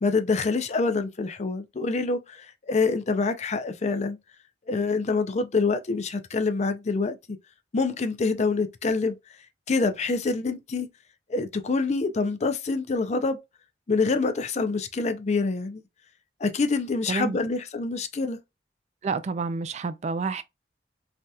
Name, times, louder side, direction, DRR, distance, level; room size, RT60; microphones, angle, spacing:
voice 1, 0.0-4.2 4.7-7.2 7.7-9.2 9.7-10.9 11.3-13.4 13.9-15.8 16.4-18.4, left 4 dB, 40° left, 0.4 m, -26 dB
voice 2, 17.1-17.4 19.0-20.4, right 4 dB, 40° right, 0.3 m, -29 dB
3.3 x 2.7 x 2.3 m
head